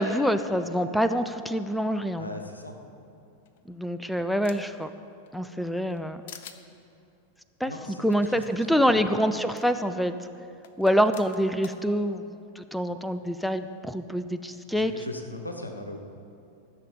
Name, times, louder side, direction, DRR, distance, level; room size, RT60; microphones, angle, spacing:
voice 1, 0.0-2.3 3.7-4.9 5.3-6.2 7.6-7.7 8.0-10.3 10.8-12.2 12.6-15.0, equal, ahead, 10 dB, 0.5 m, -26 dB
voice 2, 2.2-2.8 7.6-8.0 8.7-9.0 14.7-16.0, left 1 dB, 85° left, 4 dB, 1.2 m, -38 dB
sound 1, 3.5-4.8 5.3-6.0 6.3-6.6 8.1-8.2 8.4-8.5 9.6-9.7 10.6-11.8, left 8 dB, 55° left, 0.8 m, -47 dB
15.0 x 6.6 x 7.5 m, 2.7 s
figure-of-eight pair, 90°, 0 cm